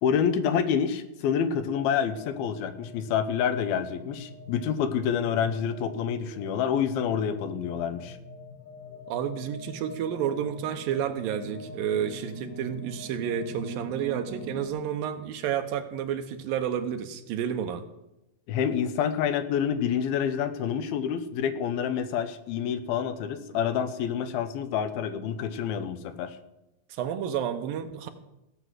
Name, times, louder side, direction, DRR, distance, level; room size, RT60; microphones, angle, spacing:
voice 1, 0.0-8.2 18.5-26.4, left 8 dB, 85° left, 10 dB, 2.8 m, -28 dB
sound 1, 1.8-14.7, equal, 45° left, 2.3 m, -43 dB
voice 2, 9.1-17.9 26.9-28.1, right 9 dB, 75° right, 8 dB, 2.6 m, -30 dB
17.0 x 6.1 x 8.0 m, 0.91 s
omnidirectional pair, 4.3 m